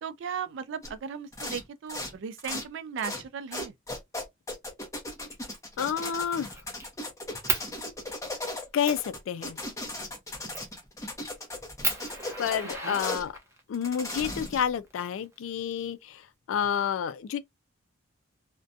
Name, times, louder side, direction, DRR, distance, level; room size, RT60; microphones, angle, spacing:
voice 1, 0.0-3.7 12.8-13.0, right 7 dB, 65° right, 0.4 m, -37 dB
sound 1, 0.8-0.9 1.3-1.6 1.9-2.7 3.0-3.3 3.5-13.3 13.7-14.7, left 2 dB, 15° left, 0.8 m, -37 dB
Fire, 5.3-5.6 6.0-6.9 7.5-7.7 8.3-8.4 8.8-9.1 10.5-10.8 11.3-11.4 11.8-13.6 14.6-15.6, right 3 dB, 15° right, 0.6 m, -33 dB
voice 2, 5.8-6.6 8.7-9.6 12.4-13.4 13.7-17.4, left 8 dB, 80° left, 0.3 m, -29 dB
2.5 x 2.1 x 2.6 m
head